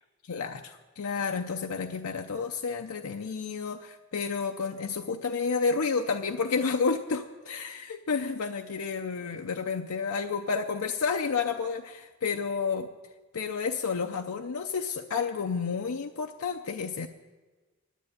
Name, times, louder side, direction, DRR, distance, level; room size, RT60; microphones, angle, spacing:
voice 1, 0.3-12.9 13.3-17.1, left 5 dB, 80° left, 5 dB, 0.6 m, -30 dB
10.0 x 8.6 x 9.5 m, 1.3 s
head